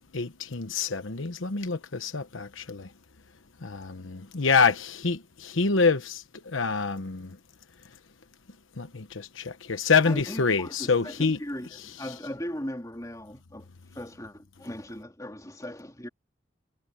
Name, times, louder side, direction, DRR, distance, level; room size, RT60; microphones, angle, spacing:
voice 1, 0.1-2.9 3.6-7.4 8.8-11.4, left 4 dB, 80° left, 1.1 m, -26 dB
voice 2, 10.0-13.7 13.9-16.1, left 1 dB, 15° left, 3.2 m, -38 dB
head